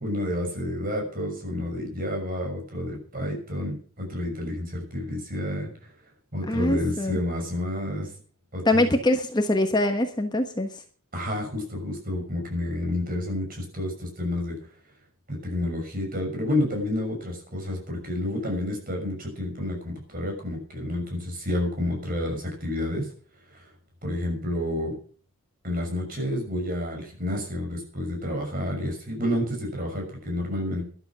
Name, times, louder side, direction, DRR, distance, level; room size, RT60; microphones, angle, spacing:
voice 1, 0.0-5.9 6.3-8.1 8.5-8.9 11.1-14.6 15.3-23.1 23.5-23.7 24.0-24.9 25.6-30.8, left 1 dB, 40° right, 2 dB, 6.2 m, -30 dB
voice 2, 6.5-7.2 8.6-10.7, left 1 dB, 20° left, 5 dB, 1.2 m, -23 dB
13.0 x 12.0 x 6.0 m, 0.43 s
head